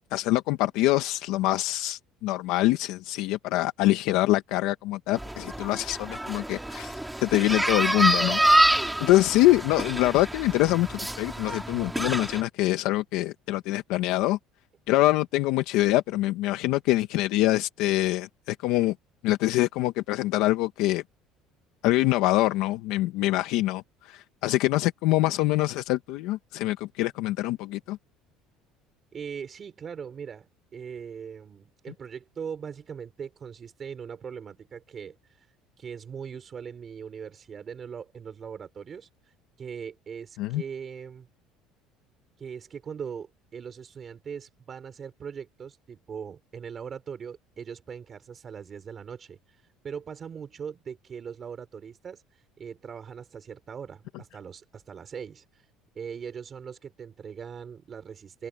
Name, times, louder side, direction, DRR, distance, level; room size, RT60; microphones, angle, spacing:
voice 1, 0.1-6.9 7.2-14.4 14.9-18.9 19.2-21.0 21.8-28.0 40.4-40.6, left 17 dB, 65° left, 0.9 m, -25 dB
sound 1, 5.1-12.4, right 1 dB, 5° right, 2.9 m, -26 dB
voice 2, 29.1-35.5 35.8-41.3 42.4-55.7 56.0-58.5, right 7 dB, 25° right, 3.8 m, -40 dB
open air
cardioid pair, 170°, 0 cm